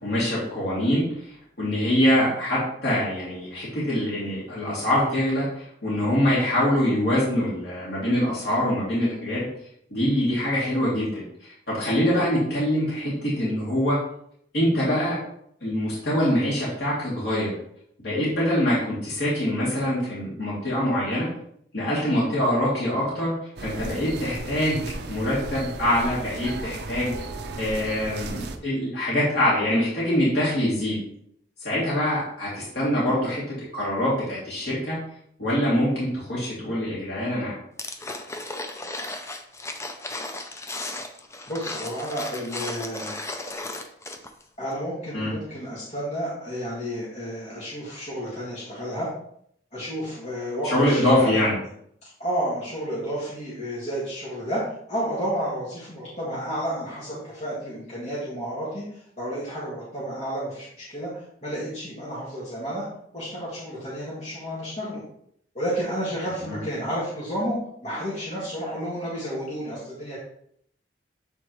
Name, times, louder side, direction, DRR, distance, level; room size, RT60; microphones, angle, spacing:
voice 1, 0.0-9.5 9.9-11.2 11.7-14.0 14.5-15.2 15.6-17.5 18.0-21.3 21.7-23.3 23.6-24.8 25.1-27.1 27.6-31.0 31.6-35.0 35.4-37.6 45.1-45.3 50.7-51.6 66.5-66.6, left 1 dB, 65° left, -8 dB, 2.7 m, -24 dB
sound 1, 23.6-28.6, right 2 dB, 65° right, 0.6 m, -35 dB
sound 2, 37.8-44.4 44.7-44.8, left 2 dB, 15° left, 0.5 m, -35 dB
voice 2, 41.5-43.2 44.6-49.1 49.7-51.0 52.2-62.8 63.1-65.0 65.5-67.6 67.8-70.2, equal, 40° left, -8 dB, 1.9 m, -31 dB
8.1 x 4.1 x 3.1 m, 0.69 s
head